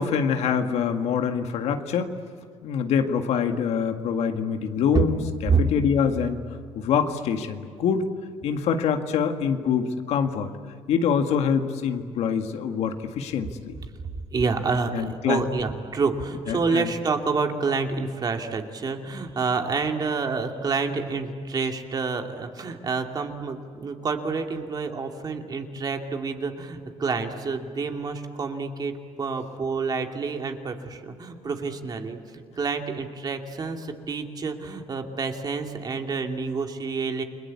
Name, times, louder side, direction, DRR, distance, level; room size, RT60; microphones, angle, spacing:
voice 1, 0.0-2.1 2.6-6.4 6.7-8.1 8.4-10.5 10.9-13.7 14.9-15.4 16.5-16.9, left 7 dB, 75° left, 6 dB, 1.9 m, -25 dB
voice 2, 14.3-37.2, right 4 dB, 35° right, 4 dB, 2.6 m, -28 dB
29.5 x 21.5 x 8.5 m, 2.3 s
cardioid pair, 115°, 11 cm